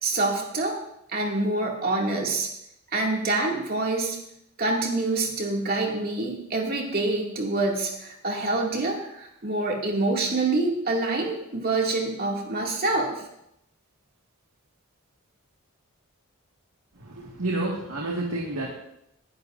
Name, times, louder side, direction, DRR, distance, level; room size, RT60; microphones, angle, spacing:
voice 1, 0.0-0.8 1.1-2.5 2.9-4.2 4.6-13.2, right 2 dB, 45° right, -1 dB, 2.3 m, -26 dB
voice 2, 16.9-18.7, right 2 dB, 75° right, -2 dB, 1.9 m, -30 dB
21.0 x 10.5 x 2.6 m, 0.80 s
head